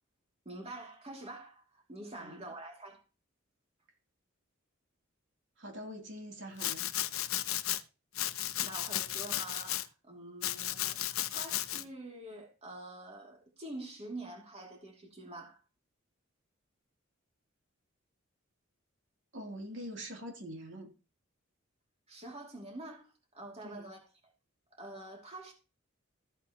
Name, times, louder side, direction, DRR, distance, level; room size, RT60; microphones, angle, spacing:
voice 1, 0.4-3.0 8.6-15.6 22.1-24.3 24.7-25.5, right 2 dB, 30° right, 2.6 m, -46 dB
voice 2, 2.1-2.4 5.6-6.9 19.3-20.9 23.6-23.9, equal, 60° right, 3.1 m, -44 dB
Domestic sounds home sounds, 6.6-7.8 8.1-9.9 10.4-11.8, left 13 dB, 85° left, 0.7 m, -34 dB
14.5 x 8.3 x 3.0 m
head